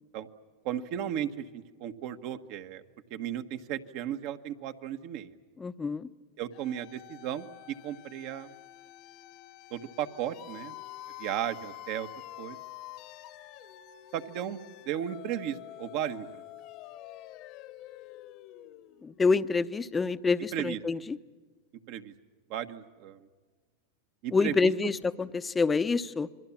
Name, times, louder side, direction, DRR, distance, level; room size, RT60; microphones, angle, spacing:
voice 1, 0.6-2.8 3.1-5.3 6.4-8.5 9.7-10.7 11.2-12.1 12.4-12.6 14.1-14.6 14.9-16.4 20.5-20.8 21.9-22.1 22.5-23.2 24.2-24.7, right 10 dB, 55° right, 8 dB, 1.4 m, -35 dB
voice 2, 5.6-6.1 19.0-21.2 24.3-26.3, left 4 dB, 15° left, 13 dB, 0.8 m, -27 dB
sound 1, 6.5-19.3, left 15 dB, 50° left, 1.3 m, -47 dB
28.5 x 22.5 x 7.3 m, 1.5 s
hypercardioid pair, 120°, 0 cm